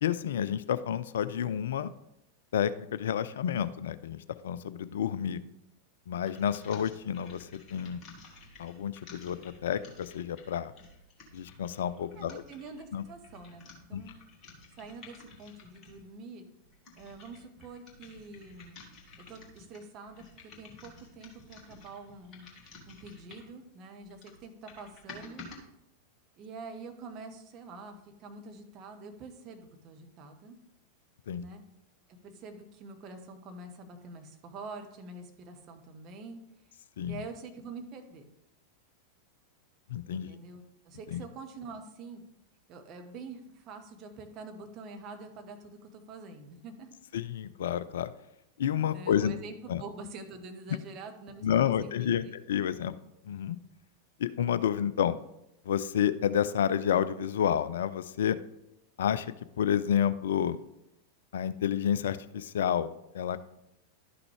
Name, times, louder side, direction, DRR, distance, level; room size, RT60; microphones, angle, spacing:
voice 1, 0.0-1.9 2.5-5.4 6.1-8.0 8.6-10.7 11.3-12.4 12.9-13.0 13.9-14.0 31.3-31.4 37.0-37.2 39.9-40.4 41.1-41.2 47.1-48.1 48.6-49.3 49.7-49.8 51.4-52.9 53.2-53.6 54.2-55.2 55.7-58.4 59.0-60.6 61.3-63.4, left 9 dB, 60° left, 15 dB, 0.3 m, -30 dB
sound 1, 6.2-16.1 16.6-23.6 24.0-25.6, left 3 dB, 30° left, 1.7 m, -52 dB
voice 2, 12.2-14.1 14.8-16.5 17.0-18.8 19.3-22.5 22.9-25.5 26.4-30.6 31.3-31.6 32.1-36.4 37.1-38.3 40.1-42.2 42.7-46.9 48.9-52.3, right 3 dB, 35° right, 5 dB, 1.1 m, -46 dB
11.5 x 5.9 x 3.4 m, 0.84 s
figure-of-eight pair, 90°, 0 cm